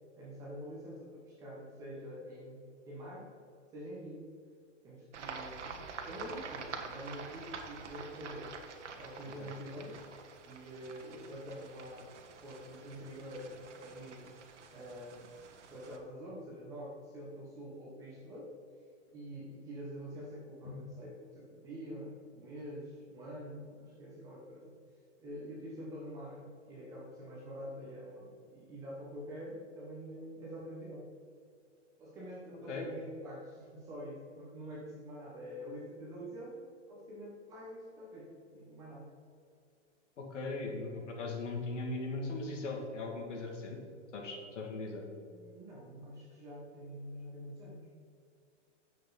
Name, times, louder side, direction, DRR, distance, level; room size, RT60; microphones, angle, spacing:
voice 1, 0.1-3.3 3.7-4.3 4.8-8.5 8.9-10.0 10.4-14.3 14.7-18.5 19.1-24.7 25.2-31.1 32.0-39.1 45.3-47.9, equal, 10° right, -5 dB, 0.8 m, -46 dB
sound 1, 5.1-16.0, right 5 dB, 70° right, 1.3 m, -47 dB
voice 2, 40.2-43.8 44.1-45.0, left 3 dB, 80° left, 1 dB, 2.3 m, -39 dB
10.0 x 7.1 x 4.0 m, 2.4 s
hypercardioid pair, 175°, 36 cm